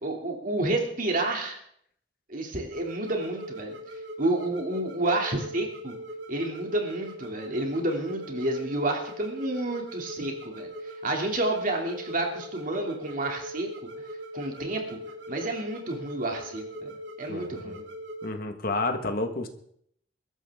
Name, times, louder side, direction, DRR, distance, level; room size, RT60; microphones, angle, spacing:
voice 1, 0.0-1.6 2.3-3.8 4.2-6.0 6.3-10.7 11.0-13.7 14.3-15.0 15.3-17.8, right 2 dB, 50° right, 2 dB, 2.8 m, -30 dB
sound 1, 2.7-18.4, equal, 75° right, 2.1 m, -40 dB
voice 2, 17.3-17.8 18.2-19.5, left 2 dB, 55° left, 6 dB, 1.6 m, -30 dB
22.5 x 13.0 x 3.7 m, 0.67 s
head